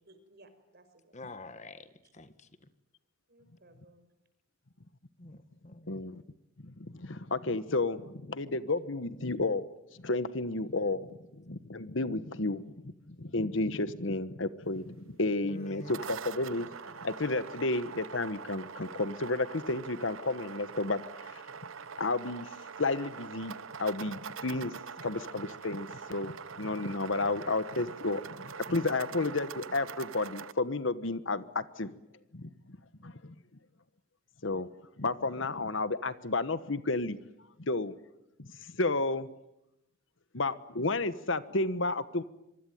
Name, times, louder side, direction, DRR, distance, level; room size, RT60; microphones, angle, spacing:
voice 1, 0.1-1.2 2.0-2.1 3.3-4.1, right 2 dB, 50° right, 5.4 m, -60 dB
voice 2, 1.1-2.7 5.2-5.9 11.9-12.3 15.5-16.0, left 2 dB, 35° left, 1.5 m, -48 dB
voice 3, 5.9-6.2 6.6-9.7 10.0-21.0 21.3-21.4 22.0-22.5 22.8-23.5 23.8-31.9 32.3-32.5 33.0-33.3 34.4-34.7 35.0-37.2 37.6-38.0 38.4-38.5 38.8-39.3 40.3-42.2, left 2 dB, 65° left, 1.3 m, -32 dB
sound 1, 15.6-30.5, right 6 dB, 75° right, 1.0 m, -44 dB
25.0 x 24.0 x 9.3 m
head